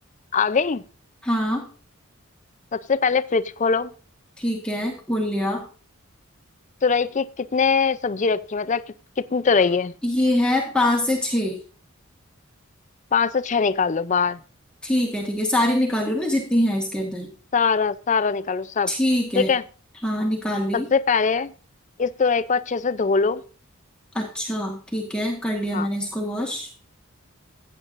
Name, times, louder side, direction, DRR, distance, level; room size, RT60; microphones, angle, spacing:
voice 1, 0.3-0.8 2.7-3.9 6.8-8.8 9.2-9.9 13.1-14.4 17.5-18.9 19.4-19.6 20.7-21.5 22.0-23.4 25.7-25.9, left 5 dB, 35° left, 0.5 m, -22 dB
voice 2, 1.2-1.7 4.4-5.6 10.0-11.6 14.8-17.3 18.9-19.5 20.0-20.9 24.1-26.7, left 1 dB, 5° left, 1.5 m, -24 dB
15.5 x 8.9 x 2.6 m
head